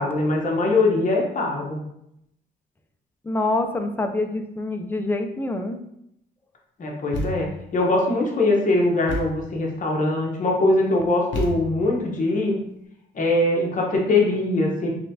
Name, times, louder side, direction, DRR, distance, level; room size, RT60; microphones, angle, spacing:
voice 1, 0.0-1.8 6.8-12.5 13.1-14.9, left 2 dB, 40° left, -1 dB, 1.0 m, -22 dB
voice 2, 3.2-5.8, left 2 dB, 10° left, 6 dB, 0.5 m, -26 dB
Thump thud, 7.1-7.7 9.1-9.5 11.3-12.0, left 2 dB, 70° left, 0.9 m, -30 dB
4.2 x 3.2 x 2.7 m, 0.77 s
cardioid pair, 90°, 20 cm